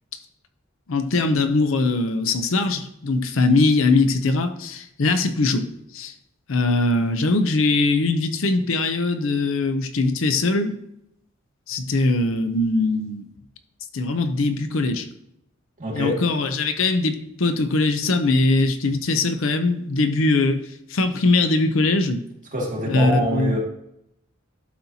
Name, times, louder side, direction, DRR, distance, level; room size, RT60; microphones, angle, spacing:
voice 1, 0.9-5.7 5.9-6.1 6.5-10.8 11.7-13.2 13.9-15.1 15.9-20.6 20.9-22.2 22.9-23.5, left 3 dB, 65° left, 8 dB, 0.6 m, -21 dB
voice 2, 15.8-16.2 22.5-23.6, equal, 40° right, -2 dB, 2.0 m, -25 dB
11.5 x 4.3 x 2.8 m, 0.78 s
head